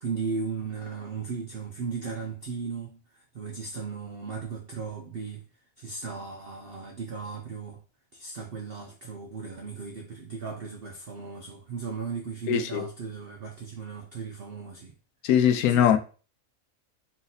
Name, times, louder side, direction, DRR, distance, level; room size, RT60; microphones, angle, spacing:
voice 1, 0.0-5.4 5.8-7.8 8.1-14.9 15.7-15.9, right 5 dB, 55° right, 0.7 m, -36 dB
voice 2, 12.5-12.9 15.2-16.0, left 9 dB, 85° left, 1.1 m, -21 dB
4.1 x 2.7 x 3.9 m
omnidirectional pair, 1.5 m